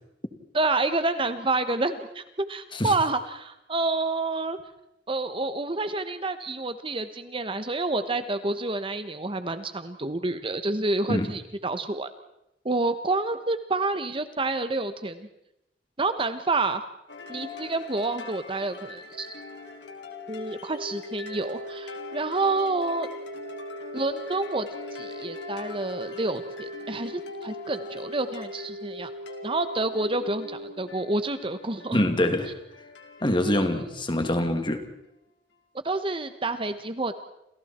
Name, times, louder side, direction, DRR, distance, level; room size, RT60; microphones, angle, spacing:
voice 1, 0.5-2.2 2.5-4.6 5.1-12.1 12.6-15.3 16.0-16.8 17.3-19.3 20.3-23.1 23.9-29.1 29.4-32.0 33.4-33.8 35.8-37.1, right 2 dB, 30° right, 10 dB, 1.2 m, -28 dB
sound 1, 17.1-34.9, left 3 dB, 85° left, 3.3 m, -44 dB
sound 2, 20.7-30.7, equal, 65° right, 2.6 m, -40 dB
voice 2, 31.9-32.5 33.2-34.8, left 1 dB, 30° left, 6 dB, 2.5 m, -24 dB
29.5 x 27.5 x 4.4 m, 0.84 s
head